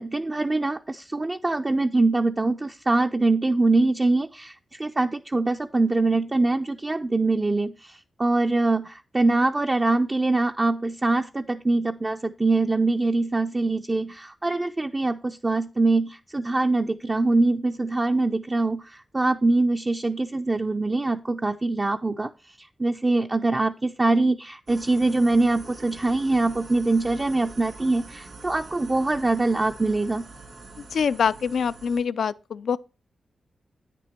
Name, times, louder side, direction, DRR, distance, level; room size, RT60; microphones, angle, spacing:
voice 1, 0.0-22.3 22.6-30.2, right 2 dB, 30° right, 0.4 m, -23 dB
sound 1, 24.7-32.0, right 3 dB, 70° right, 2.5 m, -44 dB
voice 2, 30.9-32.8, left 6 dB, 80° left, 0.4 m, -24 dB
9.2 x 6.0 x 4.4 m
cardioid pair, 60°, 0 cm